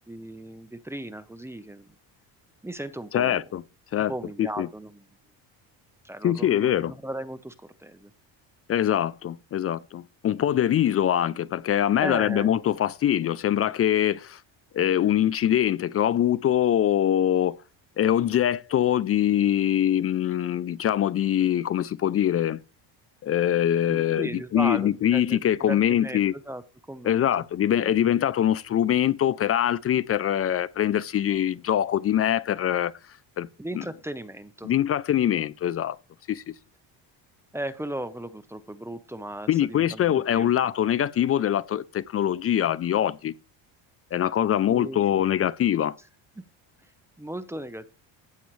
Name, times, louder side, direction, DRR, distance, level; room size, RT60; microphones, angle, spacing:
voice 1, 0.1-1.9 2.6-3.5 4.1-5.0 6.0-8.1 12.0-12.5 23.9-26.6 26.9-27.4 27.8-28.1 33.6-34.7 37.5-40.5 40.9-41.0 44.7-45.2 47.2-47.9, right 1 dB, 5° right, 0.8 m, -36 dB
voice 2, 3.1-3.6 3.9-4.1 4.4-4.7 6.2-6.9 8.7-14.4 14.7-17.6 18.0-22.6 23.2-26.3 27.0-32.9 33.4-33.5 33.8-33.9 34.6-36.0 36.3-36.5 39.5-43.3 44.1-46.0, left 10 dB, 35° left, 0.4 m, -23 dB
15.0 x 8.1 x 3.2 m
cardioid pair, 120°, 45 cm